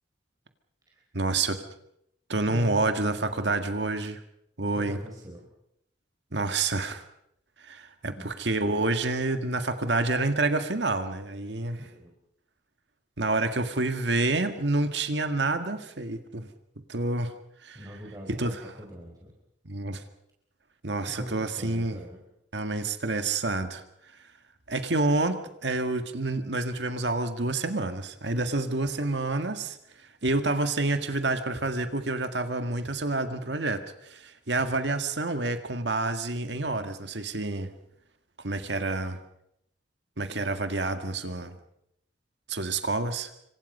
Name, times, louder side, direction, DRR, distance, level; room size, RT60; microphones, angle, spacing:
voice 1, 1.1-1.6 2.3-4.2 4.6-5.0 6.3-7.0 7.6-11.8 13.2-16.5 16.9-17.3 17.6-17.8 18.3-18.6 19.7-20.0 20.8-22.0 22.5-23.8 24.7-29.8 30.2-37.7 38.4-39.2 40.2-41.6 42.5-43.3, right 2 dB, 70° right, 7 dB, 1.9 m, -28 dB
voice 2, 2.5-3.0 3.3-3.7 4.6-5.5 8.0-8.3 11.8-12.1 17.7-19.3 21.0-22.2, equal, 20° right, -2 dB, 4.6 m, -42 dB
27.0 x 24.5 x 5.5 m, 0.78 s
head